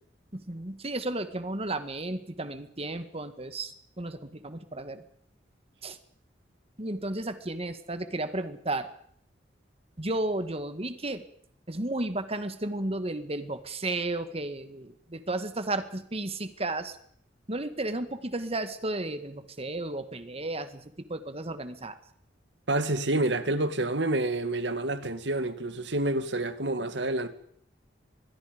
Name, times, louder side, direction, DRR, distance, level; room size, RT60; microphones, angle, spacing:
voice 1, 0.3-5.0 5.8-6.0 6.8-8.9 10.0-11.2 11.7-17.0 17.5-22.0, right 2 dB, 35° right, 1.9 m, -33 dB
voice 2, 22.7-27.3, right 2 dB, 75° right, 2.0 m, -28 dB
25.5 x 21.5 x 5.3 m
head